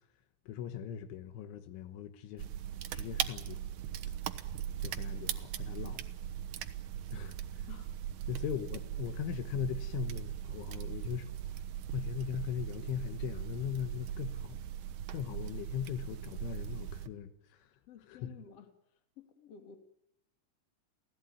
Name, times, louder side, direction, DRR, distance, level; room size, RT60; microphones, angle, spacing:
voice 1, 0.5-2.5 2.9-3.6 4.8-6.1 7.1-7.7 8.3-11.6 11.9-14.6 15.1-17.7 18.1-18.3, left 9 dB, 75° left, 3.6 m, -39 dB
Freezer crackling, 2.4-17.1, right 11 dB, 75° right, 2.1 m, -39 dB
voice 2, 17.9-18.7 19.2-19.8, left 8 dB, 40° left, 2.7 m, -52 dB
28.5 x 17.5 x 9.7 m
omnidirectional pair, 5.7 m